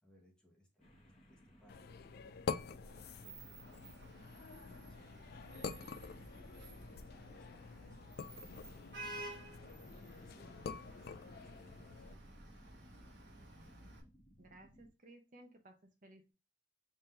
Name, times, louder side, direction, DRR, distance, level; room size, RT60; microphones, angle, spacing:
voice 1, 0.0-4.4 4.9-5.5 6.1-8.5 9.0-10.7 11.2-13.5, equal, 5° left, -1 dB, 1.0 m, -68 dB
sound 1, 0.8-14.9, equal, 35° left, 1.5 m, -64 dB
sound 2, 1.7-12.1, left 5 dB, 55° left, 0.3 m, -47 dB
Vehicle horn car horn honking / Traffic noise roadway noise, 2.9-14.0, right 2 dB, 65° right, 1.3 m, -53 dB
voice 2, 14.4-16.3, right 1 dB, 45° right, 5 dB, 0.7 m, -59 dB
3.7 x 2.7 x 4.2 m, 0.30 s
head